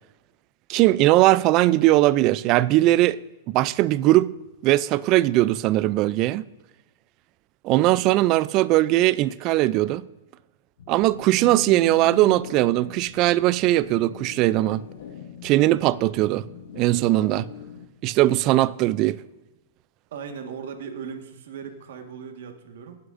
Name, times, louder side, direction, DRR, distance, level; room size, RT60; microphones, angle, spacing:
voice 1, 0.7-3.2 3.5-4.3 4.6-6.5 7.6-10.0 10.9-14.8 15.4-16.5 16.8-17.5 18.0-19.2, right 16 dB, 40° right, 0.3 m, -20 dB
sound 1, 10.8-17.9, left 8 dB, 75° left, 1.0 m, -42 dB
voice 2, 20.1-23.0, right 6 dB, 70° right, 1.5 m, -38 dB
18.0 x 7.9 x 2.6 m
hypercardioid pair, 135°, 0 cm